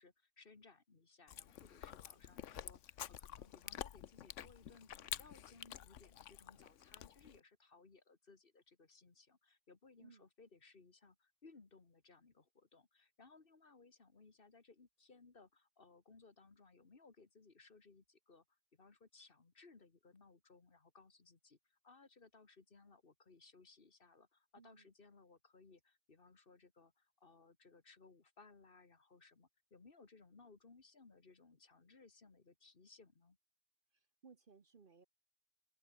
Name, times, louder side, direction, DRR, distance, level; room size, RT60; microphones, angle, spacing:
voice 1, 0.0-18.4 18.7-33.4, left 4 dB, 45° left, 2.0 m, -64 dB
Chewing mastication, 1.3-7.4, left 11 dB, 70° left, 1.1 m, -49 dB
voice 2, 24.6-24.9 34.2-35.1, right 5 dB, 45° right, 1.2 m, -62 dB
open air
omnidirectional pair, 1.3 m